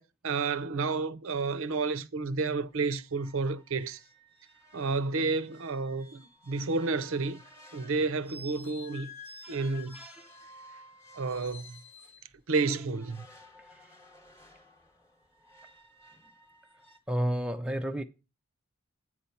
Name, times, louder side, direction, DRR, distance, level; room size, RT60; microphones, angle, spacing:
voice 1, 0.0-4.0 4.7-7.4 7.7-9.1 9.5-10.0 11.1-11.8 12.5-13.3, right 4 dB, 60° right, 0.6 m, -31 dB
sound 1, 2.3-2.4 2.7-2.8 3.1-12.3 12.9-17.0, left 1 dB, 10° left, 0.9 m, -52 dB
voice 2, 9.4-10.4 17.1-18.0, right 1 dB, 5° right, 0.4 m, -32 dB
8.5 x 4.3 x 6.9 m
head